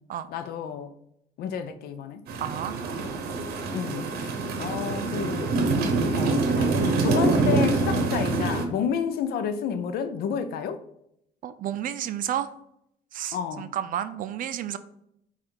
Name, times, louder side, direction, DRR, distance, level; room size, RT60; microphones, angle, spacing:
voice 1, 0.3-0.9 1.4-2.2 3.7-5.5 6.1-10.8 13.3-13.7, left 7 dB, 70° left, 0.5 m, -31 dB
sound 1, 2.3-8.7, right 3 dB, 75° right, 0.8 m, -25 dB
voice 2, 2.4-2.8 11.4-12.5 13.1-14.8, right 10 dB, 55° right, 0.4 m, -31 dB
5.0 x 2.4 x 4.3 m
supercardioid pair, 75°, 17 cm